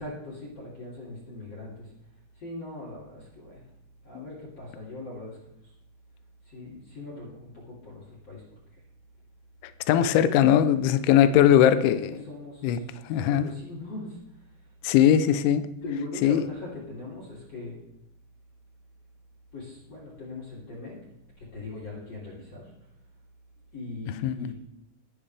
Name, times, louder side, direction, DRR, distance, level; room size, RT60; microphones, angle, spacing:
voice 1, 0.0-1.7 2.4-3.6 4.0-5.3 6.5-8.4 12.1-12.8 13.1-14.2 15.8-17.8 19.5-20.9 21.4-22.6 23.7-24.5, left 2 dB, 35° left, 3.3 m, -40 dB
voice 2, 9.9-12.1 12.6-12.8 13.1-13.5 14.8-15.7 16.2-16.4 24.2-24.5, left 10 dB, 80° left, 2.9 m, -20 dB
22.0 x 8.8 x 3.4 m
omnidirectional pair, 5.8 m